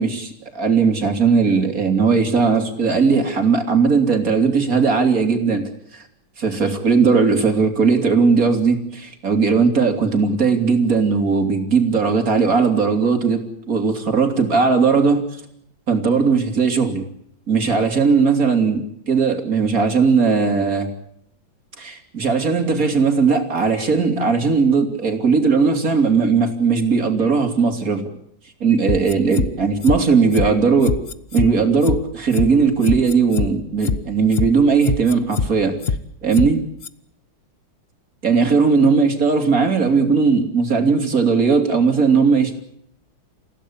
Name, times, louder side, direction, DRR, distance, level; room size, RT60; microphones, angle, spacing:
voice 1, 0.0-6.0 6.4-15.2 15.9-17.1 17.5-20.9 21.8-28.1 28.6-31.0 31.3-35.7 36.2-36.6 38.2-42.6, right 5 dB, 45° right, 6 dB, 3.6 m, -18 dB
sound 1, 28.9-29.5 29.8-30.0 30.3-30.5 30.8-31.5 31.8-32.0 32.3-32.5 32.8-33.5 33.8-34.0 34.3-34.5 34.8-35.5 35.8-36.0 36.3-36.5 36.8-36.9, left 5 dB, 40° left, 0.9 m, -22 dB
29.0 x 16.5 x 8.7 m, 0.72 s
omnidirectional pair, 2.2 m